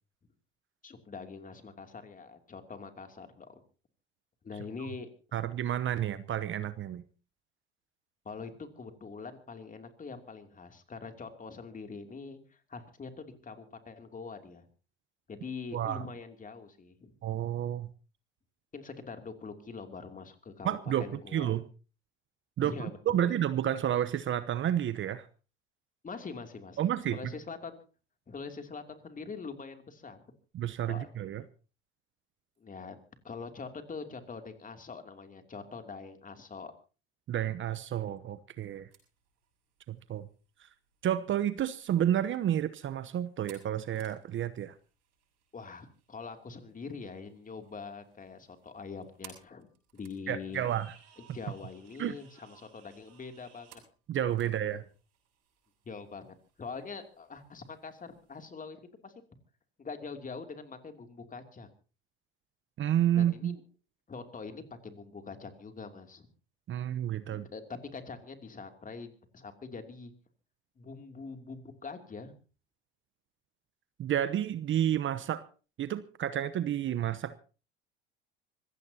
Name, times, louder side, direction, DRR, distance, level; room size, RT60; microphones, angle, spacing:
voice 1, 0.8-3.6 4.4-5.5 8.2-14.6 15.3-17.1 18.7-21.6 22.6-23.4 26.0-27.8 28.3-30.2 30.9-31.1 32.6-33.0 33.2-36.7 45.5-49.7 49.9-50.7 51.3-53.8 54.4-54.8 55.9-59.1 59.8-61.7 63.2-63.6 64.1-66.3 67.3-70.1 70.8-72.3, left 4 dB, 25° left, 7 dB, 2.9 m, -44 dB
voice 2, 5.3-7.0 15.7-16.0 17.2-17.9 20.6-21.6 22.6-22.7 23.1-25.2 26.8-27.2 30.5-31.4 37.3-38.9 39.9-40.3 41.0-44.7 50.3-50.9 52.0-52.1 54.1-54.8 62.8-63.6 66.7-67.5 74.0-75.4 75.8-77.4, right 11 dB, 40° right, 13 dB, 0.9 m, -30 dB
sound 1, 38.9-58.5, right 9 dB, 60° right, 7.0 m, -61 dB
25.5 x 16.5 x 2.9 m, 0.36 s
hypercardioid pair, 70°, 29 cm